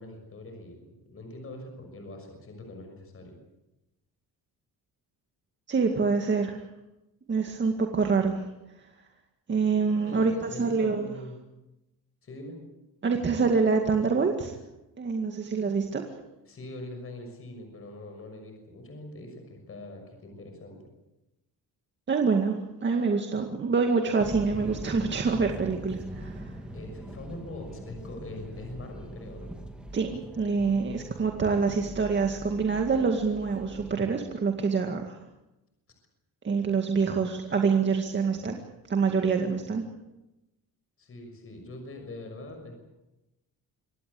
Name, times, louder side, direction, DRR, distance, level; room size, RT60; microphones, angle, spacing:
voice 1, 0.0-3.4 10.1-11.4 12.2-12.6 16.5-20.8 26.7-29.5 31.7-31.9 41.0-42.9, left 1 dB, 40° left, 5 dB, 6.3 m, -43 dB
voice 2, 5.7-6.6 7.3-8.4 8.8-8.9 9.5-11.1 13.0-14.6 15.0-16.0 22.1-26.6 29.9-35.2 36.4-38.6 38.9-39.8, right 5 dB, 30° right, 4 dB, 2.1 m, -26 dB
sound 1, 24.2-34.0, right 1 dB, 5° right, 2.7 m, -42 dB
25.5 x 18.5 x 8.6 m, 0.94 s
cardioid pair, 145°, 35 cm